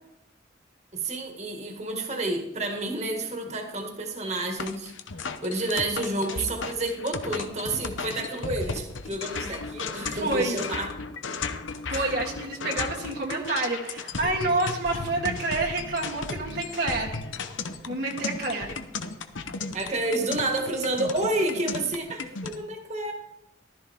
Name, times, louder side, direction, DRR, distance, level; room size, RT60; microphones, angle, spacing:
voice 1, 0.9-4.9 5.4-10.9 11.9-12.1 19.7-23.1, right 2 dB, 35° right, 3 dB, 2.0 m, -30 dB
sound 1, 4.6-22.5, left 4 dB, 85° left, 1.0 m, -35 dB
voice 2, 10.0-10.6 11.9-17.2 17.9-18.8 20.2-20.3, right 2 dB, 55° right, -2 dB, 1.7 m, -28 dB
15.0 x 13.0 x 3.6 m, 0.88 s
head